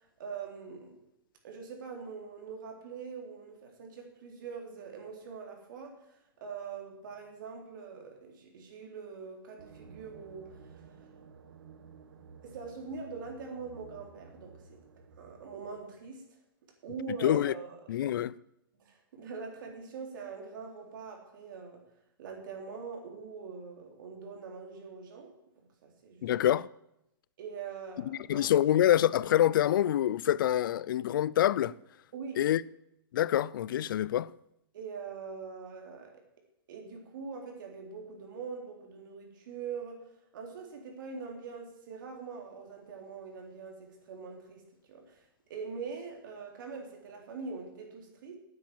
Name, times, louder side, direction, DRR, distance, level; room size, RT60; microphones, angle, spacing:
voice 1, 0.2-1.0 1.4-10.8 12.4-14.8 15.2-16.2 16.8-17.8 18.8-21.8 22.2-25.3 25.8-26.3 27.4-28.5 32.1-32.4 34.7-36.3 36.7-40.0 40.3-44.6 44.9-45.2 45.5-48.3, right 5 dB, 60° right, 3.7 m, -43 dB
sound 1, 9.6-15.8, right 5 dB, 80° right, 1.3 m, -53 dB
voice 2, 17.2-17.5 17.9-18.3 26.2-26.7 28.0-31.7 32.4-32.6 33.1-34.3, left 12 dB, 60° left, 0.4 m, -26 dB
9.5 x 8.9 x 8.9 m
hypercardioid pair, 160°, 12 cm